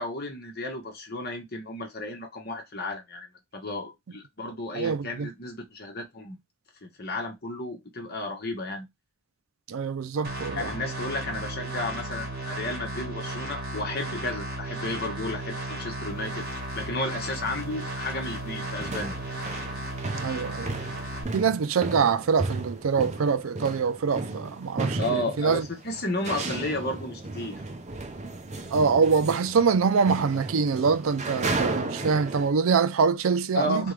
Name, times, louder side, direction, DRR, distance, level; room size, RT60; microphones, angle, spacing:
voice 1, 0.0-3.3 3.5-6.4 6.8-8.9 10.5-16.5 16.7-19.1 25.0-27.6 33.5-33.9, left 1 dB, 50° left, 1.3 m, -33 dB
voice 2, 4.7-5.3 9.7-10.7 20.2-20.7 21.3-25.7 28.7-33.9, right 5 dB, 85° right, 0.5 m, -24 dB
sound 1, 10.2-21.2, right 1 dB, 50° right, 2.0 m, -35 dB
sound 2, 16.1-16.3 17.1-17.2 17.4-17.8 18.1-32.5, right 2 dB, 35° right, 0.7 m, -34 dB
3.6 x 3.5 x 3.3 m
head